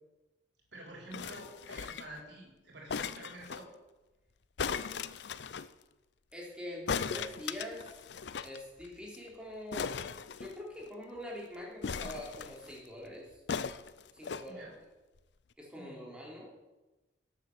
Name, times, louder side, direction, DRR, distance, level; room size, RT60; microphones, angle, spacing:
voice 1, 0.7-3.7 14.5-14.7 15.7-16.0, right 1 dB, 65° right, 0 dB, 4.0 m, -48 dB
sound 1, 1.1-2.2 2.9-3.6 4.6-5.7 6.9-8.6 8.8-8.9 9.1-9.3 9.7-10.9 11.8-12.8 13.5-14.5 15.2-15.3, left 6 dB, 60° left, 0.5 m, -38 dB
voice 2, 6.3-8.0 8.3-10.0 10.4-13.4 14.1-14.6 15.6-16.5, left 1 dB, 5° right, -3 dB, 3.4 m, -44 dB
12.0 x 8.4 x 6.6 m, 1.1 s
head